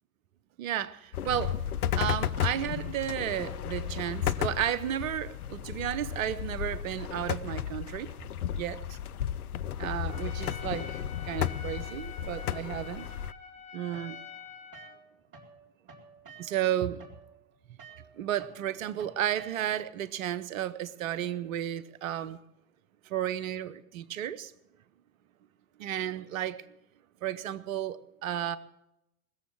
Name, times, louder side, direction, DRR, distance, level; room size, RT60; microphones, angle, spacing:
voice 1, 0.6-1.6 2.0-8.1 8.6-8.8 9.8-13.1 13.7-14.2 16.4-17.0 18.2-22.4 23.1-24.5 25.8-26.6 27.2-28.6, right 11 dB, 65° right, 1.0 m, -33 dB
sound 1, 1.1-13.3, left 10 dB, 85° left, 0.6 m, -34 dB
Trumpet, 10.1-15.0, left 7 dB, 15° left, 4.0 m, -46 dB
sound 2, 13.9-15.6 15.8-19.9, right 5 dB, 30° right, 3.6 m, -52 dB
19.5 x 7.3 x 7.5 m
figure-of-eight pair, 85°, 43 cm